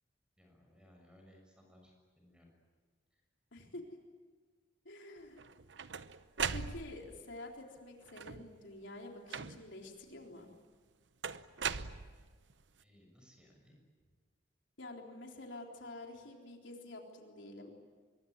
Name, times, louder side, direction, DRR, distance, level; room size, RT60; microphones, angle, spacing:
voice 1, 0.4-2.5 3.1-3.2 12.8-13.8, equal, 5° right, 2 dB, 6.7 m, -62 dB
voice 2, 3.5-3.9 4.9-5.4 6.5-10.5 14.8-17.7, left 2 dB, 80° left, 1 dB, 3.8 m, -48 dB
sound 1, 5.4-7.2 8.1-8.6 9.3-9.9 11.2-12.5, right 6 dB, 70° right, 0.8 m, -39 dB
25.0 x 23.0 x 9.5 m, 1.5 s
head